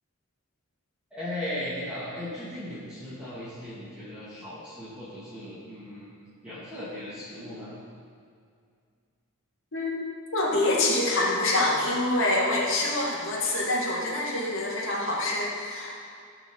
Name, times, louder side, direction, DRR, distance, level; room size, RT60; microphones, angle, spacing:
voice 1, 1.1-6.1 6.4-7.7, left 1 dB, 5° right, -13 dB, 2.5 m, -37 dB
voice 2, 9.7-10.1 10.3-16.0, left 2 dB, 65° left, -3 dB, 2.3 m, -26 dB
17.0 x 6.1 x 4.7 m, 2.2 s
head